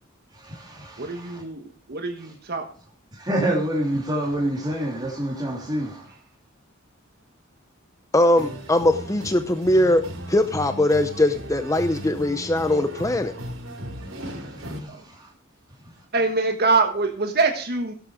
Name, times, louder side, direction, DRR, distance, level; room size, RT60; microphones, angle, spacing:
voice 1, 0.4-1.4 3.2-6.0 14.8-14.9, right 1 dB, 20° right, -1 dB, 3.0 m, -27 dB
voice 2, 1.0-2.7 14.9-15.0 16.1-17.9, right 3 dB, 50° right, 4 dB, 1.4 m, -24 dB
voice 3, 8.1-10.0 10.3-13.3, left 1 dB, 15° left, 9 dB, 0.7 m, -21 dB
sound 1, 8.3-14.8, right 1 dB, 80° right, 3.6 m, -36 dB
16.5 x 8.0 x 4.9 m, 0.42 s
head